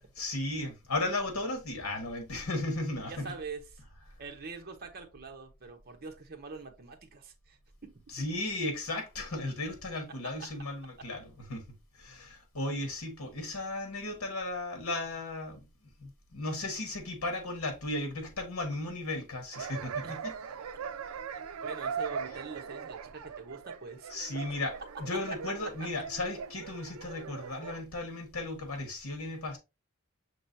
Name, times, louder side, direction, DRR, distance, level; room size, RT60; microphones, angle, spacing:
voice 1, 0.2-3.1 8.1-11.6 12.0-15.6 16.0-20.3 24.1-24.7 25.0-29.6, left 2 dB, 85° left, 1.4 m, -35 dB
voice 2, 3.1-3.6 4.2-7.9 10.2-10.3 20.0-20.1 21.6-24.1 25.6-25.7, right 4 dB, 45° right, 0.9 m, -44 dB
sound 1, 19.5-27.8, right 6 dB, 90° right, 0.4 m, -40 dB
6.0 x 3.0 x 2.7 m
head